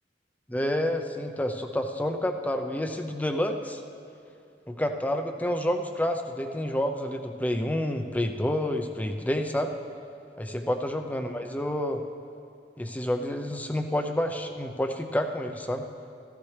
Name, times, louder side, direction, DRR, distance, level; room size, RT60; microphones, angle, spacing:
voice 1, 0.5-3.8 4.7-9.7 10.4-12.0 12.8-15.8, left 1 dB, 10° left, 6 dB, 0.6 m, -29 dB
15.0 x 14.5 x 3.3 m, 2.5 s
head